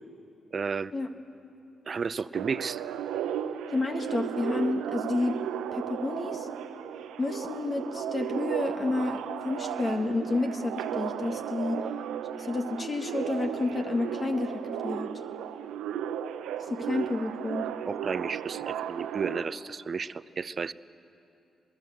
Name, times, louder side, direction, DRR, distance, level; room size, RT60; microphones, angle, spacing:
voice 1, 0.5-0.9 1.9-2.8 11.8-11.9 17.8-20.7, right 5 dB, 50° right, 16 dB, 0.6 m, -33 dB
sound 1, 2.3-19.5, right 9 dB, 85° right, 0.7 m, -35 dB
voice 2, 3.7-5.3 5.7-6.5 7.2-11.8 12.4-15.1 16.7-17.7, left 2 dB, 35° left, 5 dB, 1.7 m, -30 dB
21.5 x 20.0 x 8.1 m, 2.8 s
supercardioid pair, 55°, 0 cm